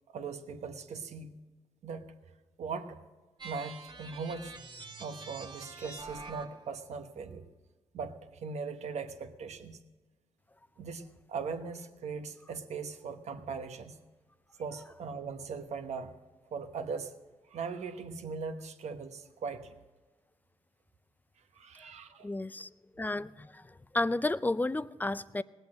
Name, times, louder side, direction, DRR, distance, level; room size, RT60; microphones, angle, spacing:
voice 1, 0.1-1.4 1.8-2.3 2.6-3.0 3.4-4.5 5.0-7.4 7.9-9.8 10.8-14.0 14.6-16.2 16.5-17.1 17.5-19.8 21.5-22.3, right 5 dB, 70° right, 7 dB, 1.1 m, -39 dB
sound 1, 3.4-6.7, right 4 dB, 40° right, 1.4 m, -46 dB
voice 2, 22.2-22.7 23.0-25.4, left 2 dB, 15° left, 16 dB, 0.5 m, -32 dB
18.5 x 8.1 x 6.4 m, 1.2 s
cardioid pair, 60°, 12 cm